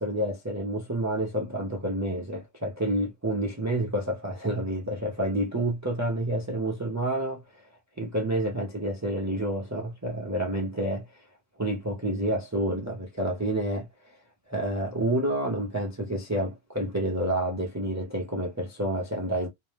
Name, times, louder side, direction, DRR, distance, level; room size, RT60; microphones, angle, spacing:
voice 1, 0.0-7.6 8.0-11.2 11.6-14.2 14.5-19.5, right 1 dB, 25° right, 0.4 m, -29 dB
2.6 x 2.0 x 3.2 m
omnidirectional pair, 1.1 m